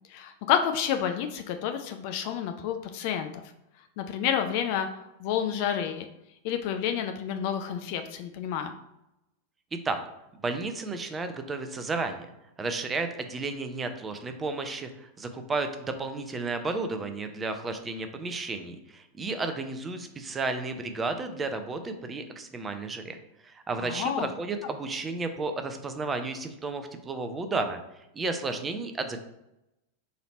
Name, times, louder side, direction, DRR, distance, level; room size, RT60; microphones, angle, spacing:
voice 1, 0.1-3.4 4.0-4.9 5.2-6.0 6.4-8.7 23.8-24.3, left 9 dB, 45° left, 7 dB, 0.4 m, -29 dB
voice 2, 10.4-12.3 12.6-23.2 23.4-27.8 28.1-29.2, right 3 dB, 15° right, 7 dB, 0.5 m, -32 dB
4.1 x 2.8 x 4.2 m, 0.87 s
figure-of-eight pair, 90°, 0 cm